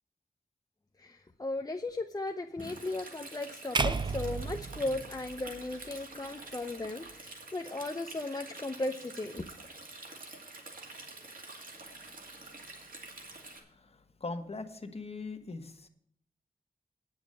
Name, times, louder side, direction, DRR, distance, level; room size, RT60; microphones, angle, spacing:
voice 1, 1.0-9.5, left 2 dB, 25° left, 4 dB, 0.6 m, -36 dB
Stream, 2.6-13.6, right 2 dB, 60° right, 2.3 m, -48 dB
sound 1, 3.7-6.0, right 4 dB, 30° right, 0.5 m, -33 dB
voice 2, 11.9-12.4 13.4-15.9, left 3 dB, 40° left, 6 dB, 1.3 m, -42 dB
9.6 x 7.2 x 7.6 m, 0.65 s
wide cardioid pair, 100°, 16 cm